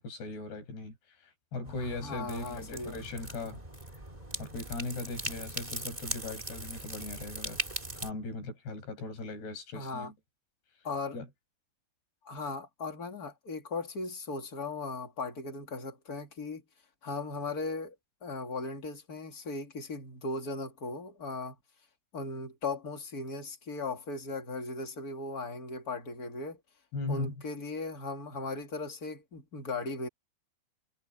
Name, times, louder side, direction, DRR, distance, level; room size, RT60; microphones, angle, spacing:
voice 1, 0.0-3.6 4.4-7.6 8.0-10.1 11.1-11.3 26.9-27.3, left 3 dB, 65° left, 9.2 m, -39 dB
sound 1, 1.6-8.1, right 1 dB, 10° right, 2.1 m, -40 dB
voice 2, 1.8-3.0 9.7-10.1 10.8-11.2 12.2-16.6 17.0-17.9 18.2-21.6 22.1-26.6 27.1-30.1, left 3 dB, 25° left, 2.2 m, -37 dB
omnidirectional pair, 5.0 m